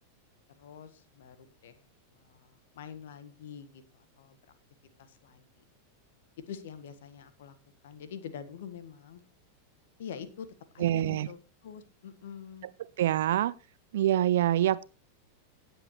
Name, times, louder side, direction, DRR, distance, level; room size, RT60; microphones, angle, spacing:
voice 1, 0.6-1.7 2.3-2.4 2.7-3.8 4.2-4.3 5.2-5.4 6.5-7.5 7.8-9.2 10.0-10.5 10.7-11.4 11.6-12.7, left 7 dB, 55° left, 1.5 m, -44 dB
voice 2, 10.8-11.3 13.0-13.5 13.9-14.8, right 12 dB, 60° right, 0.4 m, -25 dB
17.0 x 7.9 x 3.1 m
figure-of-eight pair, 90°, 0 cm